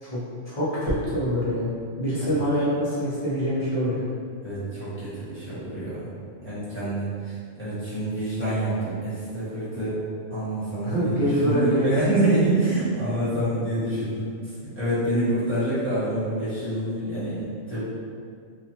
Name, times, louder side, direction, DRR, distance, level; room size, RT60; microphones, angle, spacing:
voice 1, 0.0-1.7 2.0-4.1 10.8-12.0 13.3-13.4, equal, 35° left, -9 dB, 0.7 m, -25 dB
voice 2, 4.4-6.1 6.4-7.3 7.6-10.0 10.3-14.2 14.7-17.8, right 1 dB, 10° left, -15 dB, 1.0 m, -27 dB
2.5 x 2.4 x 2.8 m, 2.2 s
omnidirectional pair, 1.4 m